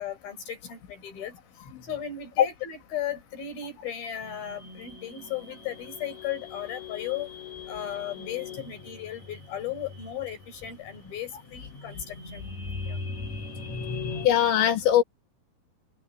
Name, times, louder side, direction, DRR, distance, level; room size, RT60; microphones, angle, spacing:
voice 1, 0.0-1.4 1.8-7.3 7.7-12.4 12.9-13.0, left 10 dB, 55° left, 7.4 m, -36 dB
sound 1, 4.2-14.3, left 3 dB, 40° left, 8.6 m, -40 dB
voice 2, 14.2-15.0, left 10 dB, 85° left, 4.7 m, -20 dB
open air
omnidirectional pair, 5.1 m